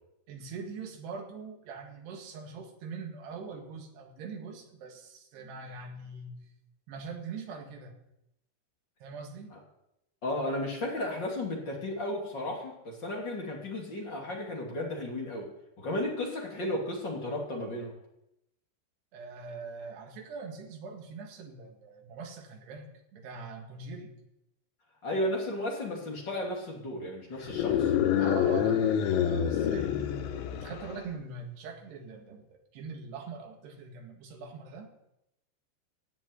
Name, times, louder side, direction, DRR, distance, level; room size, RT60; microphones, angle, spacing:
voice 1, 0.3-6.4 6.9-8.0 9.0-9.5 19.1-24.1 28.2-30.0 30.5-34.9, right 4 dB, 65° right, 3 dB, 3.7 m, -42 dB
voice 2, 10.2-15.5 15.8-17.9 25.0-27.9 29.6-29.8, left 1 dB, 30° left, -1 dB, 2.5 m, -34 dB
sound 1, 27.4-31.1, left 9 dB, 75° left, 3.3 m, -27 dB
16.0 x 6.3 x 9.6 m, 0.84 s
omnidirectional pair, 5.3 m